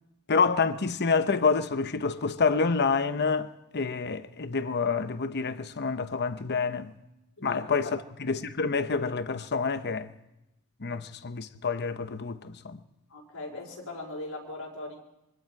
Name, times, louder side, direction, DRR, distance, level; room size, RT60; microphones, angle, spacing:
voice 1, 0.3-6.9 7.4-7.9 8.2-10.1 10.8-12.8, left 4 dB, 50° left, 0.9 m, -28 dB
voice 2, 7.4-7.9 10.9-11.0 13.1-15.0, left 2 dB, 80° left, 4.7 m, -40 dB
25.0 x 24.0 x 4.7 m
head